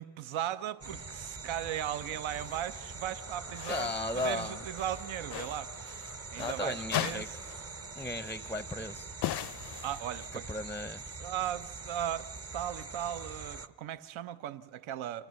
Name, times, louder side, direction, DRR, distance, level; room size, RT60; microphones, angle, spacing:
voice 1, 0.0-6.0 6.3-7.2 9.8-10.5 11.2-15.3, right 11 dB, 80° right, 0.7 m, -37 dB
sound 1, 0.8-13.7, right 3 dB, 30° right, 0.8 m, -44 dB
sound 2, 2.3-2.6 3.5-4.5 4.7-6.6 6.9-7.7 8.0-8.1 9.2-10.4, left 13 dB, 60° left, 0.5 m, -38 dB
voice 2, 3.7-4.6 6.4-7.3 8.0-9.1 10.5-11.0, left 2 dB, 5° left, 0.5 m, -35 dB
23.5 x 15.0 x 7.5 m
supercardioid pair, 50°, 47 cm